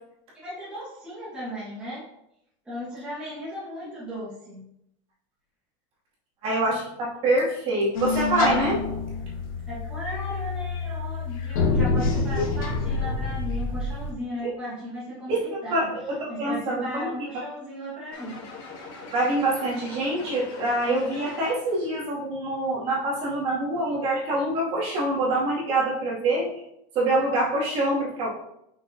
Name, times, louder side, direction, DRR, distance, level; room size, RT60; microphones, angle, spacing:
voice 1, 0.3-2.1 2.6-4.6 9.7-15.9 16.3-18.4, equal, 5° right, -10 dB, 1.7 m, -36 dB
voice 2, 6.4-8.8 12.3-12.4 14.4-14.5 15.3-17.1 19.1-26.5 26.9-28.3, right 2 dB, 35° right, -6 dB, 2.6 m, -25 dB
sound 1, 7.9-14.1, left 4 dB, 80° left, 1.7 m, -27 dB
sound 2, 18.1-21.9, left 3 dB, 50° left, 2.1 m, -42 dB
6.5 x 5.9 x 2.8 m, 0.79 s
supercardioid pair, 160°, 17 cm